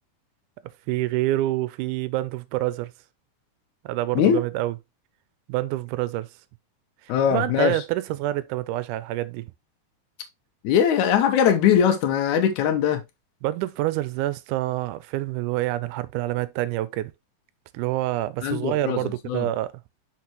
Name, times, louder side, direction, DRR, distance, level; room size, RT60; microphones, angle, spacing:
voice 1, 0.9-2.9 3.9-4.8 5.5-6.3 7.0-9.5 13.4-17.1 17.7-19.7, right 16 dB, 90° right, 2.1 m, -27 dB
voice 2, 7.1-7.7 10.6-13.0 18.4-19.0 19.3-19.5, left 8 dB, 75° left, 2.4 m, -20 dB
6.0 x 5.3 x 2.9 m
omnidirectional pair, 3.5 m